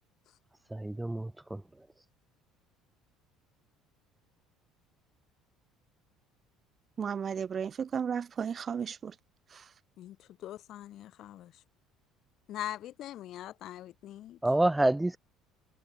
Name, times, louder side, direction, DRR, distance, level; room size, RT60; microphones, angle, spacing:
voice 1, 0.7-1.6 14.4-15.2, right 1 dB, 5° right, 0.8 m, -27 dB
voice 2, 7.0-9.1 9.5-9.6, right 7 dB, 30° right, 0.9 m, -34 dB
voice 3, 10.0-11.5 12.5-14.4, left 13 dB, 50° left, 0.9 m, -42 dB
cardioid pair, 145°, 0 cm